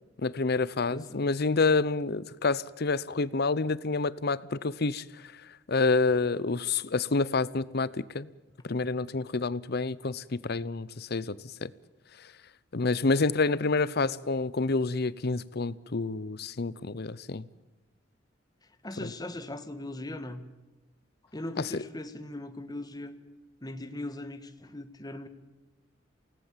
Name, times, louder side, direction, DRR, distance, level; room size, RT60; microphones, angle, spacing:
voice 1, 0.2-5.3 5.7-8.3 8.6-11.7 12.7-17.4 19.0-19.1 21.6-21.8, left 3 dB, 55° left, 0.8 m, -28 dB
voice 2, 0.9-1.2 13.5-14.1 18.8-20.4 21.3-23.1 23.6-25.3, left 1 dB, 20° left, 1.6 m, -39 dB
28.5 x 18.5 x 7.4 m
head